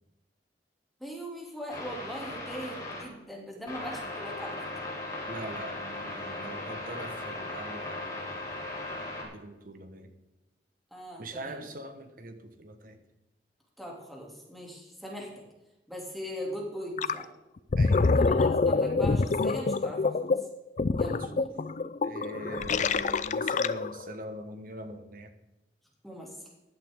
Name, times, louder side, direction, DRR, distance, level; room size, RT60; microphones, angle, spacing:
voice 1, 1.0-4.7 10.9-11.7 13.8-15.4 15.9-17.3 18.2-20.5 21.0-21.4 26.0-26.5, equal, ahead, -3 dB, 2.7 m, -40 dB
sound 1, 1.7-3.0 3.7-9.2, left 2 dB, 20° left, 4.3 m, -38 dB
voice 2, 5.0-8.7 9.2-10.1 11.2-13.0 17.8-18.3 20.9-21.5 22.0-25.3, right 1 dB, 50° right, 8 dB, 1.3 m, -43 dB
Gurgling, 17.0-17.2 17.6-24.0, left 4 dB, 45° left, 0.4 m, -26 dB
15.5 x 11.5 x 3.7 m, 0.99 s
head